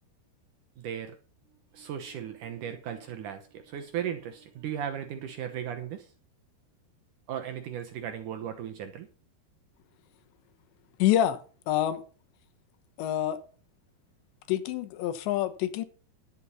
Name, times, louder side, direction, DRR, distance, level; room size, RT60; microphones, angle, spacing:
voice 1, 0.8-1.2 1.7-6.1 7.3-9.1, right 9 dB, 75° right, 1.9 m, -36 dB
voice 2, 11.0-11.4 11.7-12.0 13.0-13.4 14.5-15.9, left 12 dB, 90° left, 3.3 m, -26 dB
11.5 x 9.1 x 5.6 m
omnidirectional pair, 5.0 m